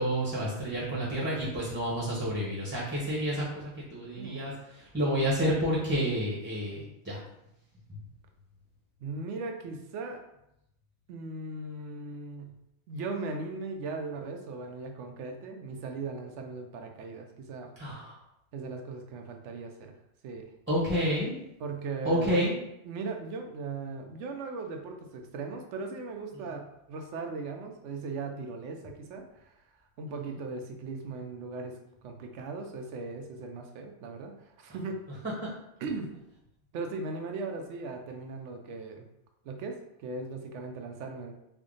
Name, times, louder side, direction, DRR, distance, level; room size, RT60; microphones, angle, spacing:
voice 1, 0.0-7.2 7.9-8.0 17.8-18.1 20.7-21.3 22.0-22.5 26.3-26.4 30.1-30.2 35.2-35.5, equal, 10° right, -7 dB, 0.8 m, -30 dB
voice 2, 4.2-4.6 9.0-10.2 11.1-12.5 12.9-17.7 18.5-19.9 20.2-20.5 21.6-22.4 22.9-26.6 26.9-29.5 30.0-31.8 32.0-35.0 35.8-36.1 36.7-39.1 39.4-41.3, right 3 dB, 75° right, 3 dB, 0.9 m, -38 dB
3.4 x 2.1 x 3.8 m, 0.83 s
omnidirectional pair, 1.3 m